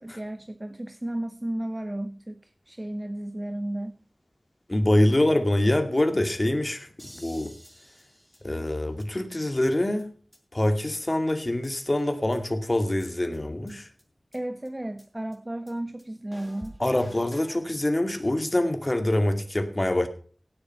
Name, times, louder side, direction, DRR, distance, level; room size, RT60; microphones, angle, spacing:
voice 1, 0.0-3.9 14.3-16.8, right 1 dB, 25° right, 10 dB, 0.8 m, -33 dB
voice 2, 4.7-6.9 7.1-7.5 8.4-10.1 10.5-13.9 16.8-20.1, left 1 dB, 35° left, 7 dB, 2.3 m, -25 dB
sound 1, 7.0-9.0 9.3-9.4 9.6-9.7 10.0-10.1 10.3-10.4 10.6-10.7 11.0-11.1 11.3-12.0 12.3-12.4 12.7-12.8 13.0-13.1 13.3-13.4 13.7-13.8 14.0-14.1 14.3-14.4 14.6-14.7 15.0-15.1 15.3-15.4 15.7-15.8 16.0-16.1 16.3-17.6, equal, ahead, 6.3 m, -50 dB
17.0 x 7.9 x 5.6 m, 0.43 s
wide cardioid pair, 60°, 0 cm